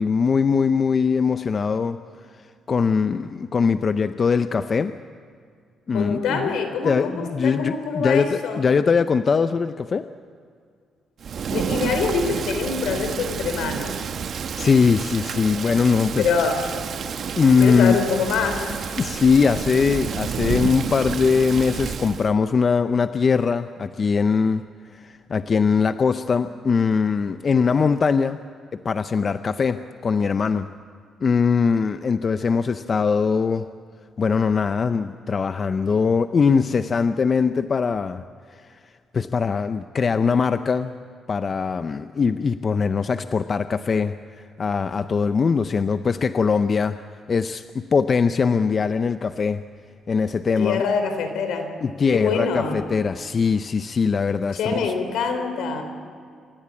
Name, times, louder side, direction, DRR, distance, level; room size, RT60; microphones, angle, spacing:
voice 1, 0.0-2.0 2.7-4.9 5.9-6.5 6.8-10.1 14.6-16.3 17.4-18.0 19.0-24.6 24.9-28.4 28.8-30.7 31.2-33.7 34.2-38.2 39.1-41.0 41.3-44.2 44.6-47.0 47.3-49.7 50.1-50.8 51.8-54.9, left 5 dB, 40° left, 11 dB, 0.6 m, -21 dB
voice 2, 5.9-7.1 7.4-8.6 11.5-14.0 16.2-16.6 17.6-18.7 50.6-51.7 52.1-52.8 54.5-55.8, left 5 dB, 80° left, 7 dB, 3.5 m, -25 dB
Thunder / Rain, 11.2-22.3, right 7 dB, 60° right, 1.0 m, -30 dB
27.5 x 15.0 x 8.5 m, 2.2 s
cardioid pair, 90°, 0 cm